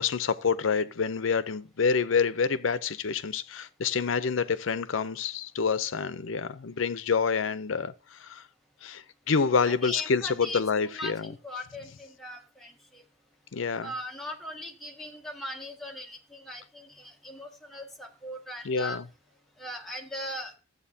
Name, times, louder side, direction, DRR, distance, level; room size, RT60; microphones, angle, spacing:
voice 1, 0.0-7.9 8.2-8.4 8.8-11.3 13.5-13.9 18.6-19.0, left 5 dB, 70° left, 0.6 m, -27 dB
voice 2, 9.6-13.0 13.8-19.0 19.6-20.5, left 1 dB, ahead, 1.7 m, -39 dB
13.5 x 8.1 x 2.7 m
head